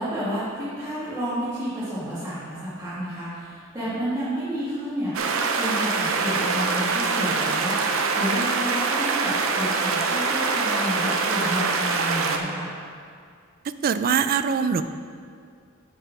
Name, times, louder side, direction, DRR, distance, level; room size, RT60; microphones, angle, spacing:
voice 1, 0.0-12.7, equal, 20° right, -13 dB, 1.8 m, -30 dB
sound 1, 5.1-12.4, right 4 dB, 70° right, 0.6 m, -24 dB
voice 2, 13.8-14.8, right 6 dB, 45° right, 11 dB, 0.3 m, -22 dB
7.7 x 4.8 x 5.8 m, 2.2 s
head